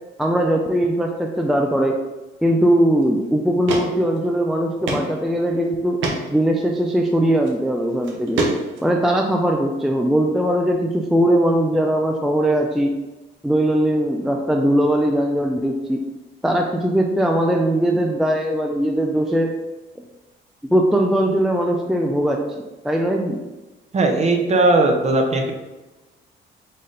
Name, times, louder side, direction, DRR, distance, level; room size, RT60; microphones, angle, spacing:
voice 1, 0.2-2.0 2.4-6.0 6.3-8.4 8.8-12.9 13.4-16.0 16.4-19.5 20.7-22.4 22.8-23.4, right 1 dB, ahead, 2 dB, 0.4 m, -20 dB
sound 1, 3.0-3.1 3.7-3.9 4.2-4.3 4.9-5.1 5.4-5.5 6.0-6.2 7.3-7.5 8.0-8.9, right 2 dB, 75° right, 0.8 m, -24 dB
voice 2, 23.9-25.5, right 2 dB, 35° right, 3 dB, 0.7 m, -18 dB
4.1 x 2.5 x 3.8 m, 1.1 s
cardioid pair, 90°, 20 cm